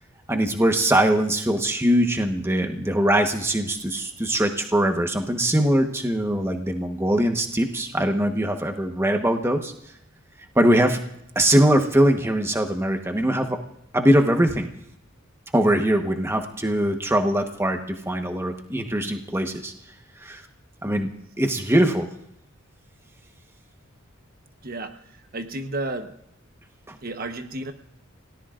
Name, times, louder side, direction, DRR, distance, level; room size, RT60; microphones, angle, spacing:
voice 1, 0.3-9.7 10.5-11.0 11.3-13.6 13.9-14.7 15.5-19.7 20.2-20.4 20.8-21.1 21.4-22.1 26.9-27.0, right 1 dB, 10° right, 4 dB, 1.2 m, -22 dB
voice 2, 24.6-26.2 27.0-27.7, right 2 dB, 45° right, 6 dB, 1.1 m, -32 dB
30.0 x 18.0 x 2.5 m, 0.76 s
head